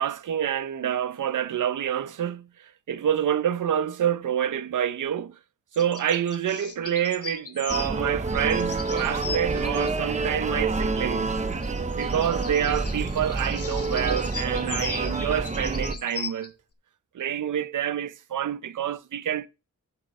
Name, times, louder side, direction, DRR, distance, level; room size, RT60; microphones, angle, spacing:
voice 1, 0.0-5.4 5.7-11.3 12.0-16.5 17.1-19.5, right 9 dB, 85° right, 0.7 m, -27 dB
sound 1, 5.7-8.0 8.3-9.9 11.2-16.5, left 5 dB, 50° left, 0.9 m, -38 dB
sound 2, 7.7-16.0, right 3 dB, 25° right, 0.6 m, -28 dB
9.9 x 5.2 x 5.3 m
wide cardioid pair, 170°, 30 cm